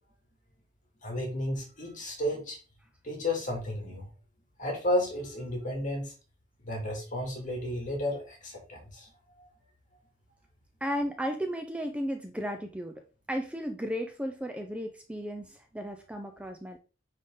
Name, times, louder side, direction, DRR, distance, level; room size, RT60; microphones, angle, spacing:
voice 1, 1.0-2.6 3.0-4.1 4.6-6.1 6.6-9.1 9.4-9.5, left 1 dB, 45° left, 0 dB, 2.5 m, -32 dB
voice 2, 10.8-13.0 13.3-16.8, equal, 5° right, 5 dB, 0.6 m, -34 dB
9.3 x 3.7 x 3.8 m, 0.35 s
head